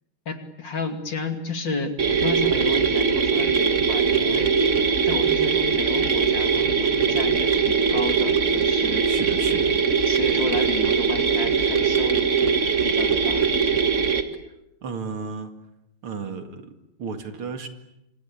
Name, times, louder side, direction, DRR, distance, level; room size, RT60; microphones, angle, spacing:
voice 1, 0.3-4.7 5.0-9.1 10.1-13.4, left 3 dB, 60° left, 7 dB, 3.3 m, -32 dB
sound 1, 2.0-14.2, right 5 dB, 35° right, 2.1 m, -21 dB
voice 2, 9.0-9.8 14.8-15.6 16.0-17.7, right 4 dB, 85° right, 7 dB, 3.1 m, -33 dB
26.5 x 26.0 x 8.6 m, 0.85 s
omnidirectional pair, 2.3 m